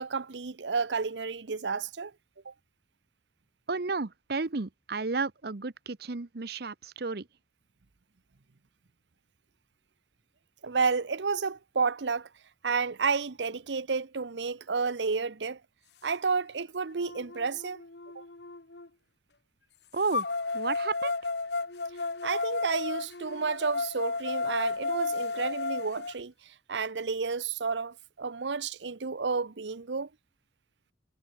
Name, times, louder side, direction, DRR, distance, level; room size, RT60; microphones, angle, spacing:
voice 1, 0.0-2.1 2.4-2.5 10.6-12.3 12.6-15.6 16.0-17.8 18.1-18.2 22.2-30.1, right 5 dB, 85° right, 0.8 m, -31 dB
voice 2, 3.7-7.3 19.9-21.1, right 4 dB, 60° right, 0.9 m, -32 dB
sound 1, 16.3-16.4 17.0-18.9 20.1-26.1, left 3 dB, 70° left, 1.6 m, -33 dB
head